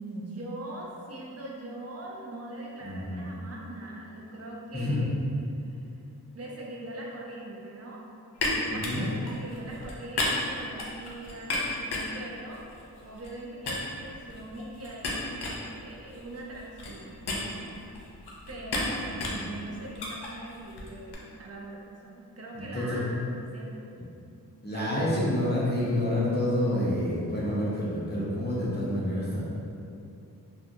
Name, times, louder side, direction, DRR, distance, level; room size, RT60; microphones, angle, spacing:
voice 1, 0.0-5.1 5.6-5.9 6.3-8.1 8.5-12.6 13.0-18.1 18.5-23.1 23.5-23.8 24.7-24.9, right 1 dB, 40° right, -3 dB, 0.5 m, -41 dB
voice 2, 2.8-3.2 4.7-5.0 8.7-9.1 19.2-19.3 22.5-23.0 24.6-29.4, left 1 dB, 25° left, -8 dB, 0.7 m, -28 dB
sound 1, 8.4-13.4 13.7-21.2, left 2 dB, 85° left, 0.5 m, -34 dB
2.7 x 2.2 x 2.5 m, 2.6 s
wide cardioid pair, 60°, 39 cm